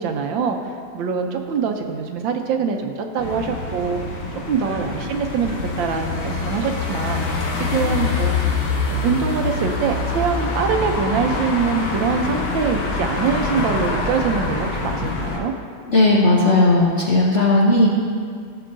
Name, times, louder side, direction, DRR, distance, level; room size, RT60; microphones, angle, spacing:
voice 1, 0.0-4.0 4.5-7.3 7.6-8.3 9.0-15.5, right 6 dB, 75° right, 4 dB, 1.4 m, -24 dB
sound 1, 3.2-15.4, left 3 dB, 85° left, 2.0 m, -25 dB
voice 2, 15.9-17.9, left 2 dB, 55° left, -3 dB, 0.8 m, -15 dB
15.0 x 6.9 x 2.6 m, 2.1 s
omnidirectional pair, 2.1 m